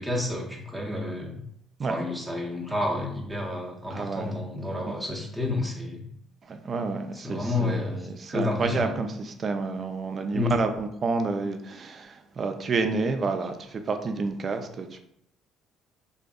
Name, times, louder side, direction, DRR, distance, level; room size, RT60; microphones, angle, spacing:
voice 1, 0.0-1.4 1.9-6.0 7.1-8.9 10.3-10.6, left 2 dB, ahead, -3 dB, 0.6 m, -30 dB
voice 2, 3.9-4.3 4.9-5.0 6.5-15.0, right 4 dB, 45° right, 7 dB, 0.3 m, -29 dB
2.6 x 2.4 x 2.3 m, 0.74 s
supercardioid pair, 65°, 0 cm